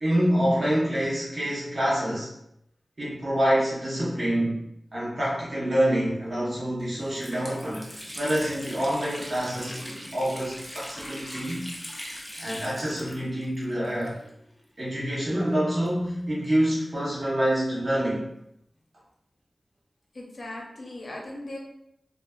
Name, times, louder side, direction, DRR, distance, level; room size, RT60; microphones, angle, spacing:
voice 1, 0.0-2.3 3.0-4.6 4.9-11.6 12.4-14.2 14.8-18.3, equal, 45° right, -8 dB, 0.8 m, -26 dB
Water tap faucet, 6.3-6.4 6.8-14.5 14.8-14.9 15.7-17.3, equal, 10° left, 0.5 m, -41 dB
voice 2, 20.1-21.6, left 1 dB, 55° left, -2 dB, 0.6 m, -38 dB
2.5 x 2.3 x 2.3 m, 0.78 s
wide cardioid pair, 90°, 0 cm